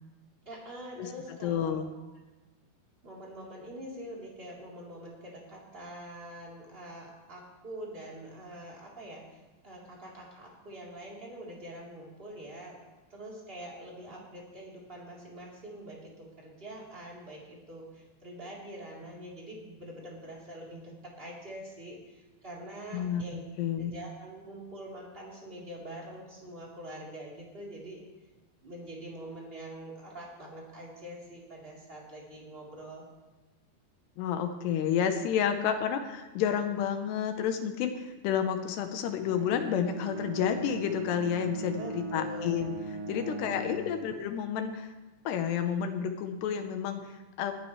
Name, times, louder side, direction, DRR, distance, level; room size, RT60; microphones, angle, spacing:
voice 1, 0.4-1.8 3.0-12.8 13.1-23.4 23.8-28.0 28.6-33.0 41.8-42.7 43.4-44.2, right 1 dB, 15° right, -4 dB, 2.9 m, -45 dB
voice 2, 1.4-1.9 22.9-23.2 23.6-23.9 34.2-42.8 43.1-44.9 45.3-47.5, left 8 dB, 75° left, 7 dB, 2.6 m, -30 dB
Bowed string instrument, 39.1-44.0, right 2 dB, 60° right, 2.9 m, -39 dB
21.5 x 13.5 x 3.3 m, 1.1 s
omnidirectional pair, 5.7 m